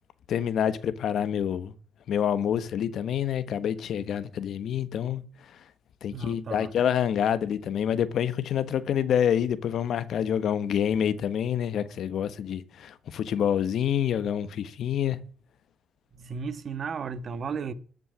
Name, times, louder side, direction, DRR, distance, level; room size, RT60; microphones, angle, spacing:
voice 1, 0.3-1.7 2.1-5.2 6.0-15.2, left 9 dB, 70° left, 1.3 m, -27 dB
voice 2, 6.1-6.7 10.4-10.5 16.1-17.7, right 5 dB, 50° right, 1.4 m, -34 dB
13.5 x 6.8 x 10.0 m
cardioid pair, 90°, 0 cm